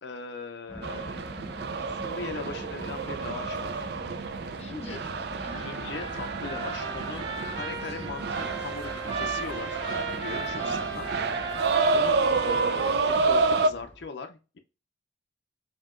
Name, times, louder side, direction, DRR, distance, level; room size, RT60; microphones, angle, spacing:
voice 1, 0.0-1.3 1.8-3.9 4.9-5.0 5.6-9.8 10.2-11.1 11.4-11.5 11.9-14.6, left 4 dB, 70° left, 5 dB, 0.5 m, -39 dB
sound 1, 0.7-14.1, left 1 dB, 10° left, 0.9 m, -44 dB
sound 2, 0.8-13.7, right 4 dB, 60° right, 0.3 m, -29 dB
voice 2, 4.6-5.7 10.5-10.9, left 2 dB, 35° left, 4 dB, 0.7 m, -44 dB
Trumpet, 5.4-13.4, right 3 dB, 30° right, 2.1 m, -38 dB
5.5 x 2.8 x 2.4 m, 0.31 s
head